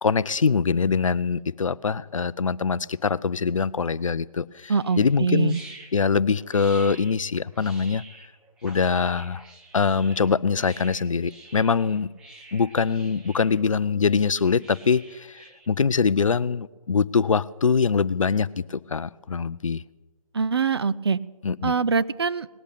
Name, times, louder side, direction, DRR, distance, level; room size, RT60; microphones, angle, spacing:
voice 1, 0.0-5.6 5.9-8.0 8.6-9.4 9.7-12.1 12.5-19.8 21.4-21.7, left 5 dB, 60° left, 19 dB, 0.5 m, -23 dB
sound 1, 4.7-15.7, right 2 dB, 5° right, 0.7 m, -48 dB
voice 2, 4.7-5.6 20.3-21.2 21.6-22.5, right 5 dB, 45° right, 16 dB, 0.5 m, -23 dB
19.0 x 8.2 x 9.0 m, 1.2 s
figure-of-eight pair, 145°, 19 cm